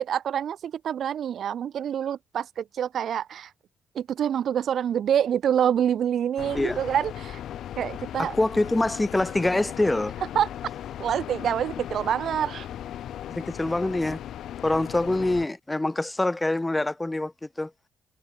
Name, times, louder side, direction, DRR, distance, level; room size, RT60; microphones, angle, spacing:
voice 1, 0.0-3.5 3.9-7.4 7.8-8.3 10.3-10.5 11.0-12.7, right 9 dB, 65° right, 1.0 m, -26 dB
sound 1, 6.4-15.5, left 11 dB, 75° left, 0.7 m, -37 dB
voice 2, 8.2-10.2 13.3-14.2 14.6-17.3 17.6-17.7, left 2 dB, 15° left, 0.3 m, -25 dB
cardioid pair, 90°, 0 cm